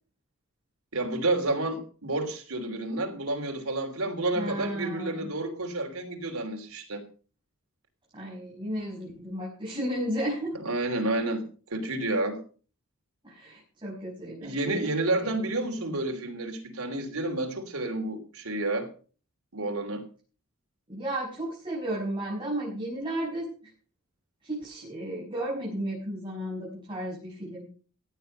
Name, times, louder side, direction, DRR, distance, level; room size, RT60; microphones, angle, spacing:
voice 1, 0.9-7.0 10.6-11.4 11.7-12.4 14.4-18.9 19.5-20.0, right 2 dB, 85° right, 3.1 m, -30 dB
voice 2, 4.3-5.3 8.1-10.5 13.2-14.6 15.2-15.3 20.9-23.7 24.4-27.7, right 1 dB, 25° right, 6.0 m, -33 dB
16.0 x 9.6 x 5.5 m
head